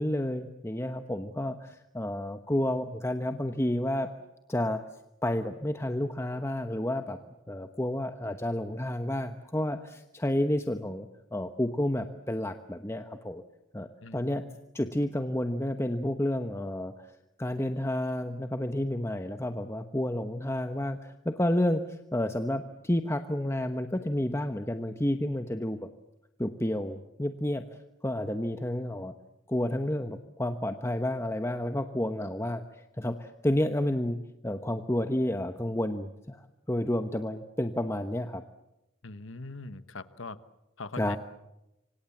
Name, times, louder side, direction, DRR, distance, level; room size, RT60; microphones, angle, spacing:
voice 1, 0.0-4.1 4.5-4.8 5.2-7.2 7.5-13.4 13.7-14.5 14.7-17.1 17.4-25.9 26.4-27.6 28.0-29.1 29.5-34.2 34.4-38.4 41.0-41.2, left 1 dB, 15° left, 7 dB, 1.0 m, -30 dB
voice 2, 14.0-14.3 39.0-40.4 40.8-41.2, left 3 dB, 90° left, 13 dB, 1.3 m, -41 dB
27.0 x 26.0 x 7.3 m, 0.93 s
head